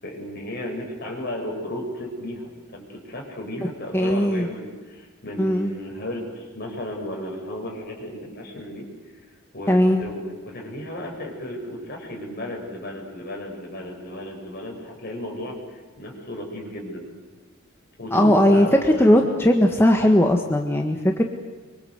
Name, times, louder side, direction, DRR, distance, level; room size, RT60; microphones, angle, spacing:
voice 1, 0.0-8.9 9.5-17.1 18.0-19.0, left 1 dB, 50° left, 0 dB, 7.0 m, -34 dB
voice 2, 3.9-4.5 5.4-5.7 9.7-10.0 18.1-18.7 19.0-21.2, left 1 dB, 10° left, 3 dB, 1.5 m, -18 dB
25.0 x 24.5 x 8.1 m, 1.4 s
head